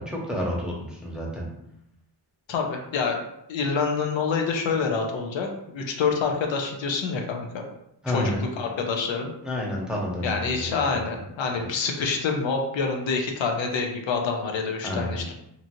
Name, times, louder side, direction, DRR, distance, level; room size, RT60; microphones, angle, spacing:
voice 1, 0.0-1.5 8.0-8.4 9.4-11.0 11.6-11.7 14.8-15.3, left 1 dB, ahead, -4 dB, 0.8 m, -30 dB
voice 2, 2.5-3.2 3.5-5.5 5.7-7.6 8.1-9.3 10.2-15.3, left 5 dB, 80° left, 2 dB, 0.7 m, -27 dB
2.9 x 2.6 x 2.6 m, 0.78 s
cardioid pair, 85°, 45 cm